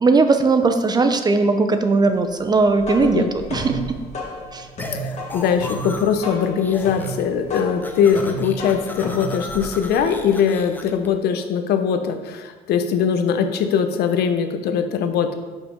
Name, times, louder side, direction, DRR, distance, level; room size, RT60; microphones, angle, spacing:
voice 1, 0.0-3.2 3.5-4.0 4.5-4.7, right 3 dB, 25° right, 8 dB, 0.6 m, -18 dB
sound 1, 2.6-10.3, right 1 dB, 40° left, 1.8 m, -33 dB
voice 2, 3.0-3.3 4.9-15.4, left 7 dB, 70° left, 7 dB, 0.7 m, -21 dB
sound 2, 4.8-6.3 6.6-7.2 7.5-11.1, left 1 dB, 10° left, 0.7 m, -35 dB
5.6 x 5.1 x 5.2 m, 1.3 s
cardioid pair, 110°, 17 cm